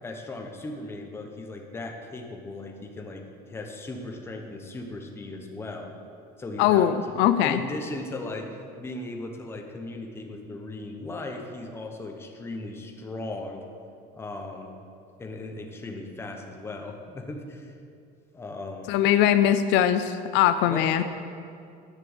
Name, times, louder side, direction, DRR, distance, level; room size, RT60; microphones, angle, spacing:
voice 1, 0.0-5.9 6.4-7.1 7.4-8.5 8.8-13.6 14.1-14.7 15.2-17.7 18.3-18.9 20.7-21.0, left 2 dB, 10° left, 2 dB, 0.9 m, -37 dB
voice 2, 6.6-7.6 18.9-21.0, left 10 dB, 70° left, 11 dB, 0.5 m, -21 dB
11.0 x 6.1 x 7.9 m, 2.5 s
cardioid pair, 175°, 19 cm